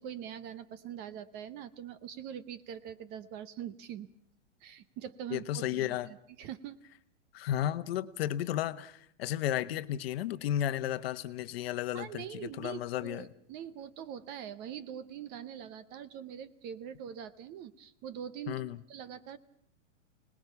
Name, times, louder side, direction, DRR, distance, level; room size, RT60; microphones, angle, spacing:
voice 1, 0.0-4.1 4.6-6.8 11.9-18.6 18.9-19.4, right 9 dB, 25° right, 0.8 m, -43 dB
voice 2, 5.3-6.1 7.3-13.3 18.5-18.8, left 12 dB, 50° left, 1.1 m, -33 dB
26.0 x 19.5 x 6.9 m
hypercardioid pair, 150°, 37 cm